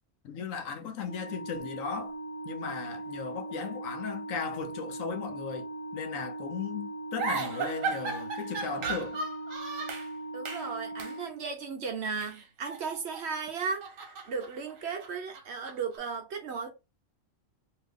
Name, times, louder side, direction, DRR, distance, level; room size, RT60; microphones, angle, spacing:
voice 1, 0.2-2.1 2.4-9.2, left 6 dB, 80° left, 1.1 m, -36 dB
Organ, 1.0-11.9, right 2 dB, 35° right, 0.6 m, -40 dB
sound 1, 7.2-10.1 10.5-10.7 11.0-11.2 12.1-13.3 13.6-16.0, right 4 dB, 85° right, 1.2 m, -36 dB
voice 2, 10.3-16.7, right 5 dB, 60° right, 0.9 m, -35 dB
2.8 x 2.5 x 3.5 m
omnidirectional pair, 1.4 m